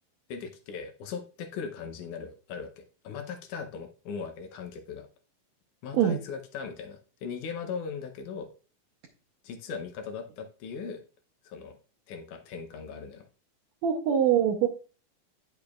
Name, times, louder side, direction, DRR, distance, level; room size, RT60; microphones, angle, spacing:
voice 1, 0.3-5.1 5.8-8.5 9.4-11.0 11.4-11.8 12.1-13.2, left 6 dB, 70° left, 6 dB, 2.1 m, -39 dB
voice 2, 13.8-14.7, right 9 dB, 75° right, -1 dB, 1.7 m, -23 dB
9.8 x 6.8 x 2.4 m, 0.37 s
omnidirectional pair, 4.1 m